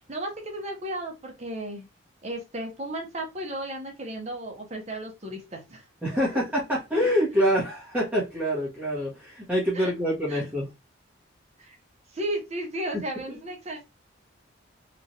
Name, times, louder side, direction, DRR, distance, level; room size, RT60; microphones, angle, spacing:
voice 1, 0.1-1.9 2.2-5.9 9.7-9.9 10.3-10.4 11.6-11.8 12.1-13.8, right 1 dB, 35° right, 0.8 m, -34 dB
voice 2, 6.0-10.7 13.3-13.4, equal, 10° right, 1.0 m, -26 dB
3.0 x 2.4 x 2.6 m
head